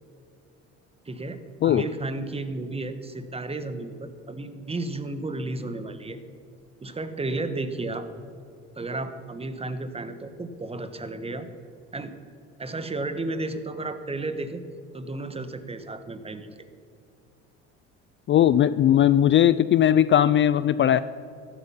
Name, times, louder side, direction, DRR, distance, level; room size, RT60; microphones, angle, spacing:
voice 1, 1.0-6.2 6.8-8.1 8.7-11.5 11.9-12.1 12.6-14.6 14.9-16.5, right 2 dB, 20° right, 10 dB, 1.3 m, -33 dB
voice 2, 18.3-21.0, left 10 dB, 40° left, 15 dB, 0.4 m, -19 dB
14.5 x 12.0 x 5.7 m, 2.4 s
supercardioid pair, 85°, 32 cm